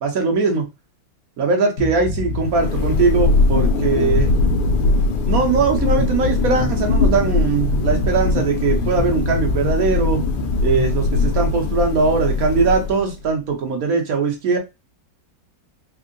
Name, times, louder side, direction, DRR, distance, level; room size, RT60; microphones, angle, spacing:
voice 1, 0.0-0.6 1.4-4.3 5.2-10.2 10.6-14.6, right 4 dB, 55° right, 1.1 m, -20 dB
sound 1, 1.8-11.3, left 2 dB, 50° left, 1.0 m, -29 dB
Thunder, 2.2-13.2, left 3 dB, 70° left, 1.2 m, -20 dB
3.6 x 2.0 x 3.7 m
omnidirectional pair, 2.1 m